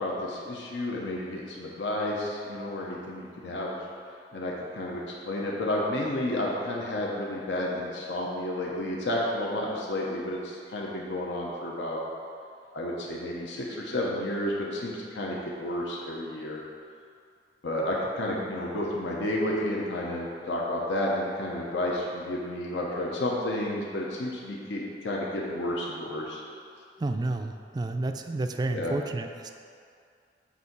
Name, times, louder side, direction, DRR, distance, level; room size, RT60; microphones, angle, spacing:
voice 1, 0.0-3.8 4.3-12.0 12.7-16.6 17.6-26.4 28.7-29.0, left 1 dB, 80° left, -3 dB, 0.9 m, -31 dB
voice 2, 27.0-29.5, right 2 dB, 25° right, 6 dB, 0.3 m, -30 dB
8.3 x 2.8 x 5.9 m, 2.4 s
head